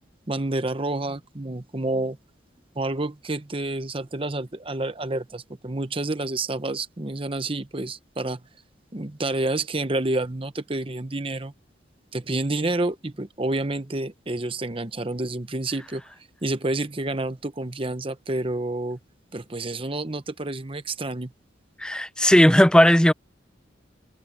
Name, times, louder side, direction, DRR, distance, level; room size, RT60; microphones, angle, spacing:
voice 1, 0.3-2.2 2.7-8.4 8.9-11.5 12.1-16.0 16.4-19.0 19.3-21.3, right 2 dB, 30° right, 1.0 m, -29 dB
voice 2, 21.8-23.1, equal, 5° left, 0.7 m, -16 dB
head